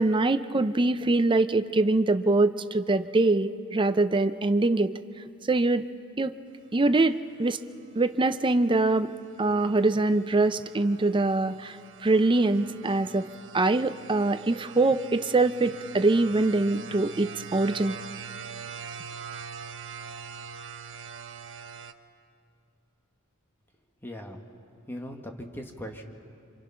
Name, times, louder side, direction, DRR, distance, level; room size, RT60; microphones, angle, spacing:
voice 1, 0.0-5.0 5.5-5.8 6.2-6.3 6.7-7.1 7.4-7.6 8.0-9.1 9.4-11.8 12.0-13.3 13.5-18.0, right 2 dB, 20° right, 11 dB, 0.5 m, -23 dB
sound 1, 7.2-21.9, right 6 dB, 60° right, 0.8 m, -44 dB
voice 2, 24.0-24.4 24.9-26.0, equal, 10° left, 3 dB, 1.6 m, -39 dB
28.0 x 26.0 x 5.7 m, 2.5 s
head